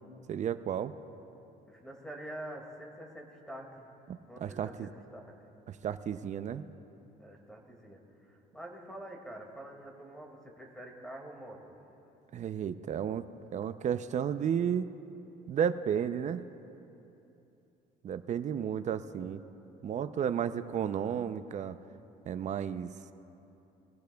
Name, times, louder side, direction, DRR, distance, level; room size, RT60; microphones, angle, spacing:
voice 1, 0.3-0.9 4.1-4.9 5.7-6.6 12.3-13.3 13.5-14.9 15.5-16.5 18.0-19.4 19.8-21.8 22.3-22.9, right 8 dB, 45° right, 11 dB, 0.6 m, -33 dB
voice 2, 1.7-3.9 4.3-5.5 7.2-11.8, right 1 dB, 5° left, 1 dB, 2.1 m, -46 dB
22.5 x 15.5 x 2.3 m, 2.9 s
cardioid pair, 110°, 17 cm